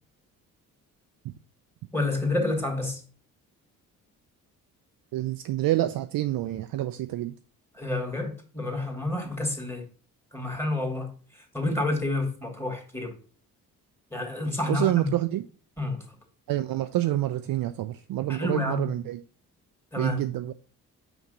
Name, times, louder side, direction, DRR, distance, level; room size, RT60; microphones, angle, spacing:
voice 1, 1.9-3.0 7.8-9.8 10.3-11.1 11.5-13.1 14.1-15.1 15.8-16.0 18.3-18.8 19.9-20.2, left 2 dB, 5° left, 2.4 m, -29 dB
voice 2, 5.1-7.4 14.7-15.4 16.5-19.2 20.0-20.5, right 14 dB, 50° right, 0.6 m, -27 dB
5.9 x 5.3 x 3.8 m
hypercardioid pair, 40°, 44 cm